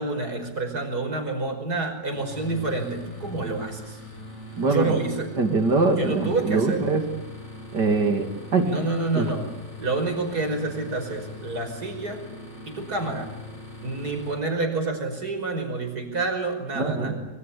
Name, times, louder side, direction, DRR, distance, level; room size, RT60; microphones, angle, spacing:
voice 1, 0.0-4.0 4.7-5.3 5.9-6.9 8.6-9.5 9.8-12.2 12.7-13.3 13.8-17.2, right 3 dB, 65° right, 5 dB, 5.9 m, -28 dB
sound 1, 2.1-14.4, left 1 dB, 40° left, 8.6 m, -41 dB
voice 2, 4.6-5.0 5.4-7.0 7.7-8.6 9.1-9.3 16.8-17.1, right 3 dB, 90° right, 6 dB, 3.5 m, -23 dB
26.0 x 23.5 x 8.7 m, 1.1 s
omnidirectional pair, 1.8 m